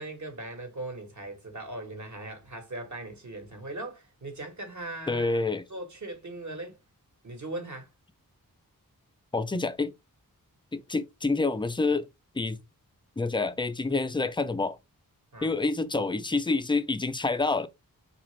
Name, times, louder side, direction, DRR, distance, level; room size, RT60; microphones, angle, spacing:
voice 1, 0.0-5.4 5.7-6.8 7.2-7.9 15.3-15.5, right 2 dB, 50° right, 1.4 m, -39 dB
voice 2, 5.1-5.6 9.3-9.9 10.7-12.1 12.3-12.6 13.2-14.8 15.4-17.7, left 3 dB, 15° left, 0.4 m, -27 dB
3.8 x 2.4 x 3.2 m
cardioid pair, 55°, 36 cm